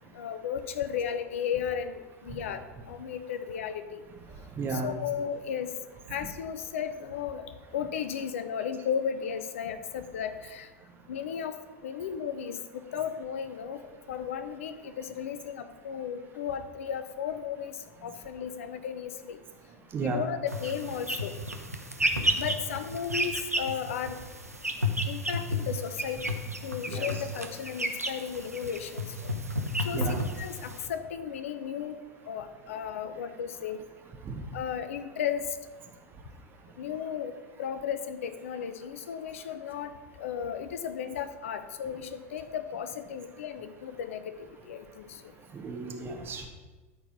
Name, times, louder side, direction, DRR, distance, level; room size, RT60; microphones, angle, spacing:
voice 1, 0.1-4.0 4.7-5.7 6.1-7.5 7.7-10.7 11.1-11.5 11.8-12.6 12.9-13.8 14.1-19.4 20.0-21.3 22.4-24.2 25.1-26.3 26.6-29.3 29.8-32.0 32.3-33.8 34.5-35.4 36.8-37.3 37.6-39.9 40.2-45.2, left 8 dB, 60° left, 10 dB, 0.7 m, -35 dB
voice 2, 4.6-4.9 19.9-20.2 26.9-27.2 29.9-30.2 34.2-34.4 45.5-46.5, right 4 dB, 30° right, 2 dB, 1.6 m, -33 dB
sound 1, 20.5-30.9, equal, 90° right, 0.9 m, -32 dB
12.5 x 4.6 x 5.9 m, 1.3 s
figure-of-eight pair, 85°, 8 cm